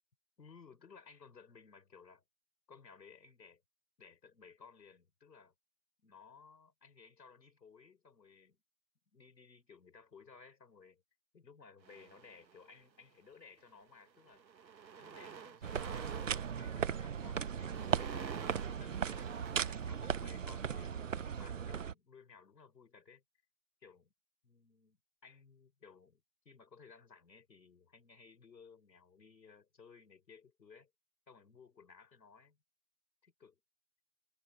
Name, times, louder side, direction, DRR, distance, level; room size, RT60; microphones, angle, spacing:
voice 1, 0.4-2.2 2.7-3.6 4.0-5.5 6.0-8.6 9.1-11.0 11.3-14.4 15.0-23.2 23.8-24.1 24.4-30.9 31.3-32.6 33.2-33.6, left 5 dB, 80° left, 4.9 m, -59 dB
sound 1, 11.8-12.8 13.6-13.8 14.1-20.6, right 6 dB, 85° right, 1.9 m, -50 dB
sound 2, 15.6-21.9, right 7 dB, 50° right, 0.8 m, -37 dB
hypercardioid pair, 170°, 50 cm